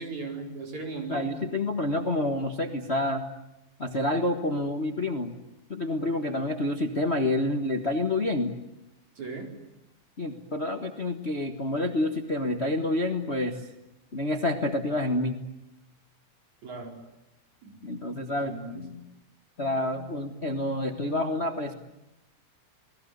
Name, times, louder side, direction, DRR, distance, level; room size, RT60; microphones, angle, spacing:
voice 1, 0.0-1.3 9.2-9.5 16.6-17.0 17.6-17.8 18.3-18.8, right 3 dB, 70° right, 3 dB, 6.0 m, -37 dB
voice 2, 1.1-3.2 3.8-5.3 5.7-8.5 10.2-13.6 14.1-15.4 17.8-19.0 19.6-21.7, left 1 dB, 35° left, 6 dB, 1.2 m, -28 dB
29.5 x 20.0 x 9.4 m, 0.89 s
omnidirectional pair, 3.3 m